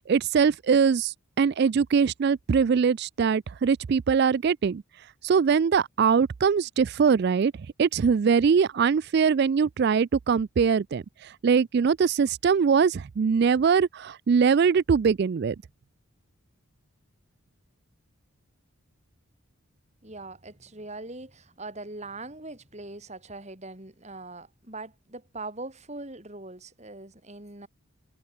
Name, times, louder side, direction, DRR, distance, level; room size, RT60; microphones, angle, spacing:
voice 1, 0.0-4.8 5.2-7.5 7.8-15.6, right 6 dB, 45° right, 0.3 m, -22 dB
voice 2, 20.0-27.7, right 2 dB, 30° right, 2.9 m, -41 dB
head